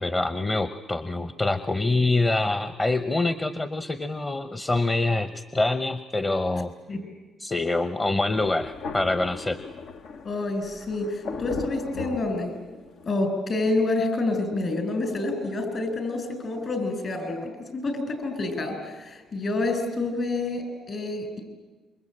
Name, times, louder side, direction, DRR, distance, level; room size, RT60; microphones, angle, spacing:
voice 1, 0.0-6.7 7.4-9.6, left 2 dB, 25° left, 11 dB, 1.0 m, -25 dB
Thunder, 8.3-13.1, left 4 dB, 75° left, 1.3 m, -37 dB
voice 2, 10.2-12.5 13.0-21.4, left 2 dB, 50° left, 7 dB, 6.8 m, -28 dB
28.0 x 24.0 x 8.9 m, 1.2 s
cardioid pair, 90°, 0 cm